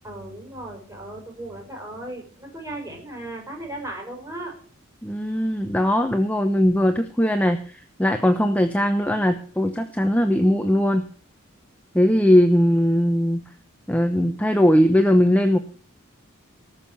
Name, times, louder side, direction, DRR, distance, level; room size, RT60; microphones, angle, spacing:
voice 1, 0.0-4.5, right 1 dB, 15° right, 1 dB, 5.5 m, -36 dB
voice 2, 5.0-11.1 11.9-13.4 13.9-15.6, equal, 5° left, 6 dB, 0.9 m, -19 dB
19.5 x 6.7 x 7.3 m, 0.42 s
head